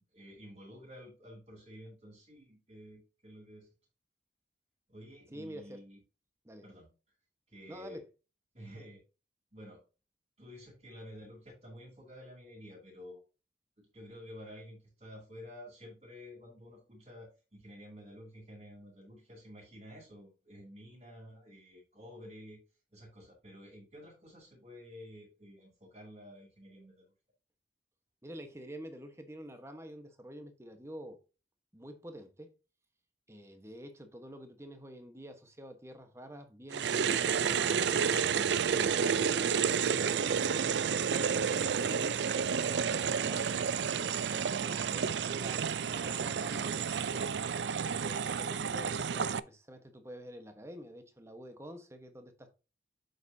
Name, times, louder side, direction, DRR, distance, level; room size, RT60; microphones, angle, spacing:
voice 1, 0.0-3.7 4.9-6.0 6.6-6.9 7.5-8.0 8.5-9.0 9.5-9.8 10.4-13.2 13.8-22.6 22.9-27.1, equal, 35° right, 3.1 m, -51 dB
voice 2, 5.3-5.8 6.4-6.7 7.7-8.1 28.2-31.2 31.7-32.5 33.3-38.0 38.7-39.2 39.8-40.8 41.5-43.6 44.0-47.2 48.0-52.5, equal, 15° right, 1.2 m, -48 dB
sound 1, 36.7-49.4, right 7 dB, 75° right, 0.4 m, -30 dB
7.9 x 6.7 x 2.7 m
head